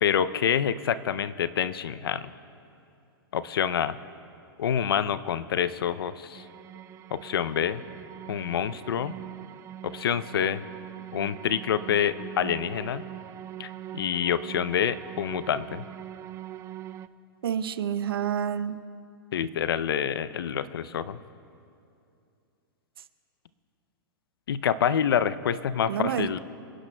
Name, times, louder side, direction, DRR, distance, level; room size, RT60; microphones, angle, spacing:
voice 1, 0.0-2.3 3.3-4.0 4.6-6.4 7.1-7.8 8.3-9.1 9.8-10.6 11.1-13.0 13.6-15.9 19.3-21.2 24.5-26.4, left 8 dB, 80° left, 15 dB, 0.5 m, -27 dB
sound 1, 6.3-17.1, right 12 dB, 25° right, 0.3 m, -42 dB
voice 2, 17.4-18.8 25.9-26.4, right 9 dB, 80° right, 13 dB, 0.6 m, -28 dB
25.5 x 10.5 x 2.2 m, 2.5 s
hypercardioid pair, 120°, 12 cm